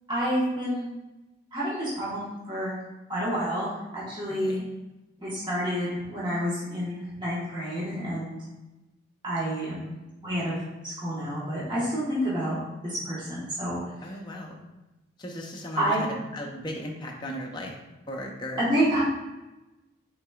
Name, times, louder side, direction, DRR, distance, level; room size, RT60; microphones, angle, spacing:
voice 1, 0.1-0.9 1.5-2.8 3.1-4.6 5.2-8.4 9.2-9.9 10.2-10.5 10.8-13.8 15.8-16.1 18.6-19.0, equal, 20° right, -9 dB, 1.2 m, -29 dB
voice 2, 14.0-14.6 15.2-17.7 18.1-18.6, left 1 dB, 20° left, 0 dB, 0.5 m, -36 dB
5.9 x 3.8 x 2.3 m, 1.0 s
head